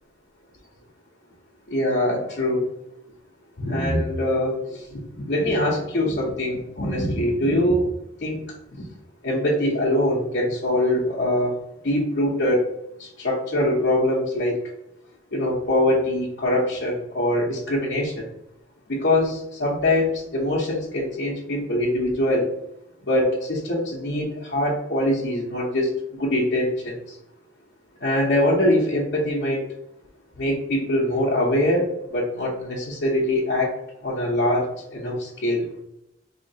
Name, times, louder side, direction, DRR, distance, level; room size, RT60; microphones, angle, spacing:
voice 1, 1.7-2.6 3.6-7.9 8.2-8.4 9.2-11.5 11.8-12.7 13.0-14.6 15.3-18.3 18.9-22.5 23.1-27.2 28.0-29.7 30.4-33.7 34.0-35.6, left 1 dB, 65° left, -6 dB, 0.9 m, -23 dB
4.3 x 2.9 x 2.8 m, 0.83 s
head